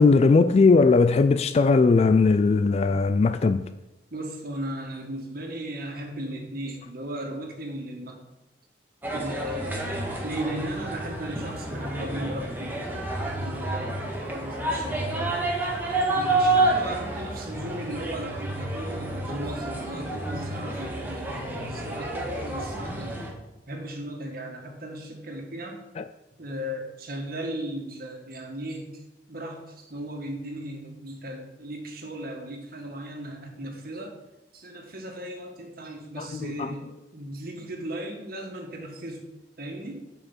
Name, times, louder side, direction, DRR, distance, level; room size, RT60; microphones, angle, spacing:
voice 1, 0.0-3.7 26.0-26.1 36.2-36.7, left 4 dB, 35° left, 0.3 m, -19 dB
voice 2, 4.1-8.2 9.1-9.9 10.2-13.1 13.4-15.4 16.1-23.2 23.7-25.8 26.4-34.1 34.5-36.9 37.1-39.2 39.6-40.0, right 1 dB, 55° right, 1.8 m, -36 dB
sound 1, 9.0-23.3, right 2 dB, 10° right, 1.7 m, -29 dB
7.4 x 5.7 x 7.3 m
head